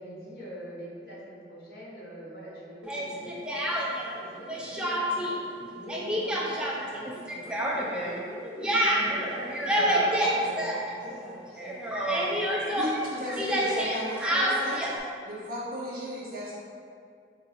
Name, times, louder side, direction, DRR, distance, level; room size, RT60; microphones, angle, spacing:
voice 1, 0.0-3.4 3.6-5.4 5.7-8.2 8.6-11.8, equal, 60° left, -6 dB, 1.0 m, -43 dB
Speech, 2.9-4.2 4.5-5.3 5.6-11.3 11.6-15.0, right 1 dB, 5° right, 0.4 m, -28 dB
voice 2, 12.7-16.5, equal, 50° right, -7 dB, 1.0 m, -35 dB
3.8 x 2.6 x 4.2 m, 2.3 s
head